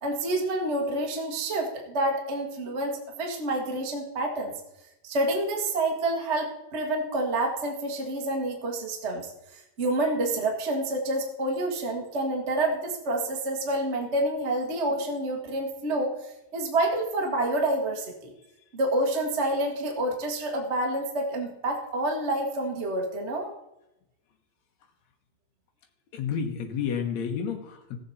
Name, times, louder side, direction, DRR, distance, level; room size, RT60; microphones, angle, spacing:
voice 1, 0.0-4.5 5.0-9.3 9.5-16.1 16.5-18.3 18.7-23.5, right 1 dB, 40° right, 1 dB, 0.9 m, -28 dB
voice 2, 26.1-28.0, left 7 dB, 60° left, 3 dB, 2.4 m, -30 dB
16.5 x 7.8 x 4.2 m, 0.89 s
omnidirectional pair, 3.8 m